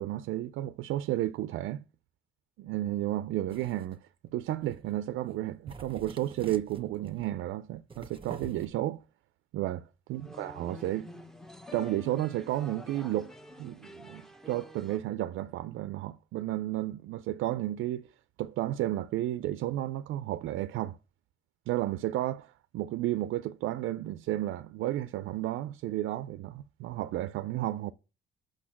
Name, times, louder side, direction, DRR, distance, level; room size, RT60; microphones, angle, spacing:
voice 1, 0.0-1.8 2.6-4.0 4.3-9.0 9.5-9.8 10.1-11.1 11.7-13.3 13.6-18.1 18.4-21.0 21.7-27.9, right 14 dB, 85° right, 0.4 m, -32 dB
sound 1, 3.5-4.0 4.6-5.0 5.3-5.4 5.7-7.3 7.9-8.7, right 4 dB, 25° right, 1.1 m, -46 dB
sound 2, 10.2-15.0, left 1 dB, ahead, 1.0 m, -48 dB
6.4 x 6.3 x 5.8 m
cardioid pair, 90°, 20 cm